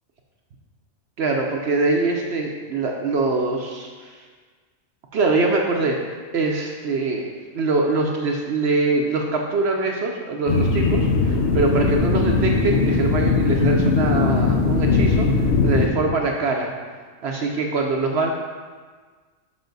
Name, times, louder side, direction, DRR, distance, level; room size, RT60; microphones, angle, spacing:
voice 1, 1.2-4.2 5.1-6.0 6.3-7.2 7.5-16.7 17.2-18.3, right 3 dB, 65° right, 1 dB, 0.9 m, -23 dB
sound 1, 10.5-15.9, left 4 dB, 65° left, 0.9 m, -19 dB
6.9 x 5.4 x 3.9 m, 1.5 s
omnidirectional pair, 1.3 m